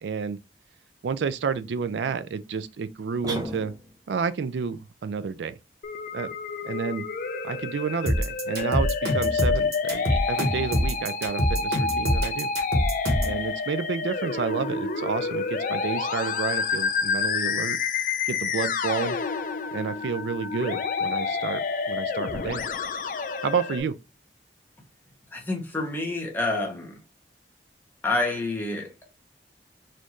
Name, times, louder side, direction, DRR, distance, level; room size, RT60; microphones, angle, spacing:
voice 1, 0.0-0.4 1.0-3.7 4.1-5.6 6.1-6.3 6.6-7.1 7.4-12.5 13.2-17.8 18.3-19.2 19.7-22.6 23.4-24.0, right 5 dB, 85° right, 0.4 m, -30 dB
sound 1, 3.2-4.1, right 1 dB, 20° right, 0.8 m, -34 dB
Musical instrument, 5.8-23.8, left 5 dB, 45° left, 0.4 m, -29 dB
sound 2, 8.1-13.4, equal, 60° right, 1.3 m, -25 dB
voice 2, 25.3-27.0 28.0-29.2, left 2 dB, 10° left, 0.9 m, -28 dB
4.1 x 2.6 x 3.0 m
head